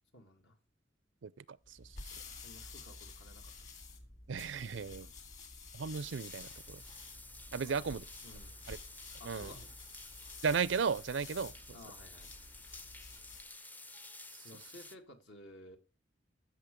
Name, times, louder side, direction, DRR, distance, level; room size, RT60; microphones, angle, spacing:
voice 1, 0.1-0.6 1.9-3.7 4.5-5.2 7.5-8.6 9.2-9.8 11.7-12.3 14.4-15.8, left 1 dB, 70° left, 1.8 m, -56 dB
voice 2, 1.2-1.8 4.3-5.1 5.7-6.8 7.5-8.0 8.7-8.8 9.2-9.5 10.4-11.5, right 5 dB, 80° right, 0.5 m, -35 dB
sound 1, 1.6-13.5, left 3 dB, 40° left, 2.1 m, -51 dB
sound 2, 5.9-15.0, left 2 dB, 10° left, 0.5 m, -52 dB
14.0 x 6.4 x 5.2 m
head